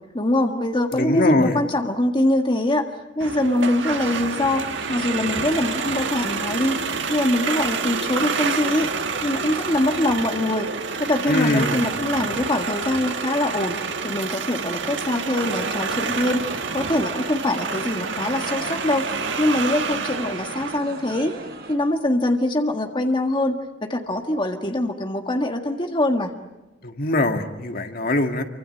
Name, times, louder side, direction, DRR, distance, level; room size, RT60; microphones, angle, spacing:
voice 1, 0.1-4.6 4.9-6.8 7.1-8.9 9.2-10.7 11.0-16.4 16.7-19.1 19.4-21.4 21.7-26.3, left 1 dB, 25° left, 4 dB, 1.7 m, -23 dB
voice 2, 0.9-1.6 11.3-11.9 26.8-28.4, left 2 dB, 55° left, 5 dB, 2.0 m, -22 dB
sound 1, 3.2-20.8, right 5 dB, 85° right, 1.6 m, -28 dB
sound 2, 4.7-21.8, right 2 dB, 60° right, 5.1 m, -38 dB
27.5 x 25.0 x 7.9 m, 1.0 s
head